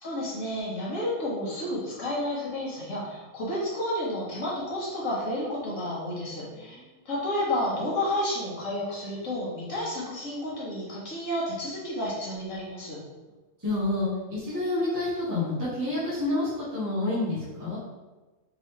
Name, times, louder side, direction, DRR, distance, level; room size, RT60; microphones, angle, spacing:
voice 1, 0.0-6.8 7.0-13.0, left 1 dB, 80° left, -6 dB, 1.6 m, -31 dB
voice 2, 6.3-7.0 13.6-17.8, left 2 dB, 15° right, -10 dB, 1.1 m, -29 dB
3.9 x 3.1 x 3.0 m, 1.2 s
omnidirectional pair, 1.3 m